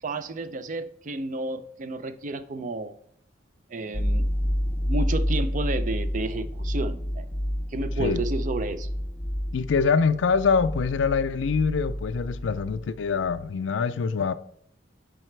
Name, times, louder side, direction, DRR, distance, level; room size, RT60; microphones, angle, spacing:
voice 1, 0.0-2.9 3.7-4.2 4.9-7.2 7.7-8.9, right 2 dB, 45° right, 0.4 m, -31 dB
sound 1, 3.9-13.0 13.2-13.4, equal, 10° left, 0.5 m, -29 dB
voice 2, 9.5-14.3, left 5 dB, 80° left, 0.4 m, -24 dB
7.6 x 4.8 x 3.3 m
head